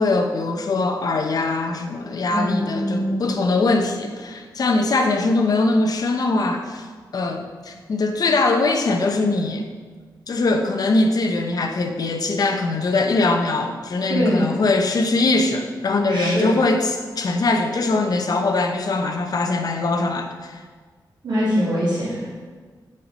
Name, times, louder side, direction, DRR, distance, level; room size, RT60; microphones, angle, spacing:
voice 1, 0.0-6.8 7.1-9.6 10.3-20.5, left 3 dB, 50° left, 4 dB, 0.8 m, -21 dB
voice 2, 2.3-3.4 14.1-14.5 16.1-16.6 21.2-22.3, equal, 85° right, -11 dB, 2.7 m, -23 dB
7.5 x 5.8 x 5.1 m, 1.5 s
wide cardioid pair, 180°, 8 cm